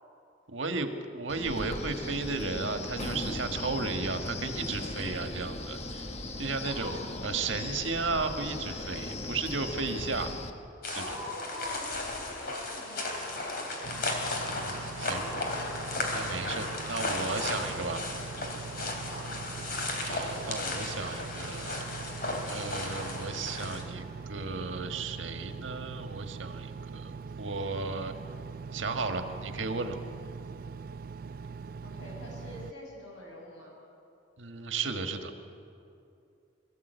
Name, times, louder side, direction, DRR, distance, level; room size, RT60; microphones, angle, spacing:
voice 1, 0.5-6.0 6.4-7.0 7.2-10.3 10.9-11.2 14.4-15.2 16.1-18.0 20.0-21.9 22.5-28.1 28.7-30.0 34.4-35.3, right 4 dB, 85° right, 6 dB, 1.5 m, -34 dB
Wind, 1.3-10.5, left 2 dB, 35° left, 1.2 m, -37 dB
voice 2, 6.6-7.2 10.9-14.2 15.0-15.3 19.1-19.4 31.8-33.7, left 1 dB, 85° left, -2 dB, 7.0 m, -43 dB
sound 1, 10.8-23.8, left 2 dB, 55° left, 3.1 m, -35 dB
Engine, 13.8-32.7, right 5 dB, 50° right, 0.4 m, -42 dB
23.0 x 14.0 x 8.1 m, 2.6 s
head